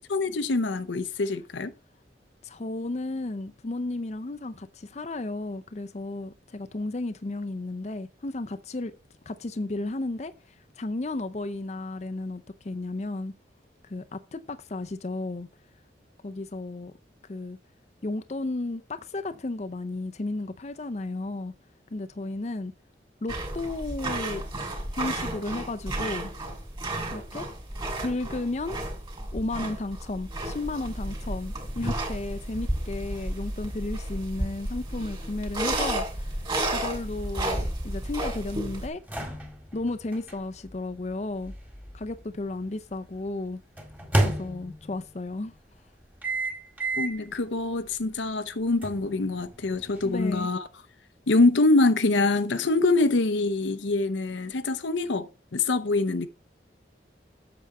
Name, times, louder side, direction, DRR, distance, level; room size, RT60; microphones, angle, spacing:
voice 1, 0.1-1.7 47.0-50.7 51.3-56.3, left 2 dB, 85° left, 0.7 m, -24 dB
voice 2, 2.4-8.9 9.3-13.3 13.8-15.5 16.2-16.9 17.3-17.6 18.0-21.5 21.9-22.7 23.2-24.4 24.9-26.3 27.1-27.5 28.0-28.8 29.3-36.4 36.7-39.0 39.7-41.5 41.9-43.6 44.2-45.5 50.0-50.5, left 2 dB, 35° left, 0.5 m, -33 dB
sound 1, 23.3-38.9, right 1 dB, 25° right, 2.7 m, -32 dB
sound 2, 37.0-42.7 43.8-45.1 46.2-47.3 47.7-47.9 48.8-50.4, right 1 dB, 10° right, 1.7 m, -32 dB
8.4 x 7.0 x 4.2 m
head